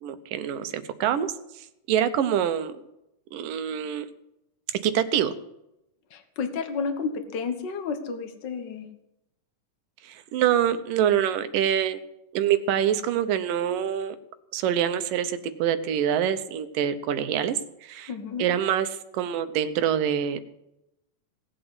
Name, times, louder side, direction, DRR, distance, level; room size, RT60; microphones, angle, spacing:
voice 1, 0.0-1.3 1.9-2.7 3.3-4.1 4.8-5.3 10.0-12.0 12.3-14.2 14.5-18.1 18.4-18.9 19.1-20.5, right 9 dB, 80° right, 11 dB, 2.5 m, -25 dB
voice 2, 6.1-8.9 18.1-18.5, left 5 dB, 75° left, 8 dB, 1.0 m, -31 dB
18.0 x 7.9 x 8.0 m, 0.86 s
omnidirectional pair, 3.9 m